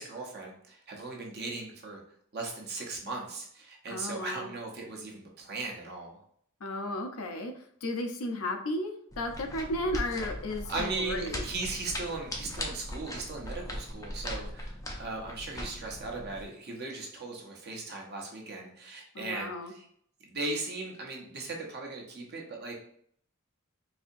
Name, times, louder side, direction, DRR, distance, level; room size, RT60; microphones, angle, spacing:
voice 1, 0.0-2.0 2.3-6.2 10.7-19.9 20.2-22.7, right 3 dB, 50° right, 0 dB, 0.8 m, -38 dB
voice 2, 3.9-4.5 6.6-11.5 19.1-19.7, left 1 dB, 75° left, 5 dB, 0.6 m, -34 dB
sound 1, 9.1-16.4, left 1 dB, 15° left, 0.5 m, -39 dB
4.1 x 2.7 x 2.5 m, 0.65 s
head